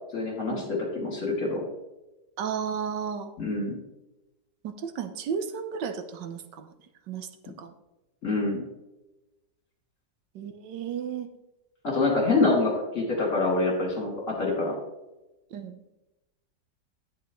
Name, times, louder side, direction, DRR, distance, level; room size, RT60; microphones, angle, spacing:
voice 1, 0.1-1.6 3.4-3.8 8.2-8.6 11.8-14.8, left 3 dB, 45° left, -2 dB, 3.2 m, -26 dB
voice 2, 2.4-3.3 4.6-7.7 10.3-11.3 15.5-16.0, right 7 dB, 75° right, 8 dB, 1.4 m, -34 dB
11.0 x 9.1 x 3.1 m, 1.0 s
omnidirectional pair, 1.9 m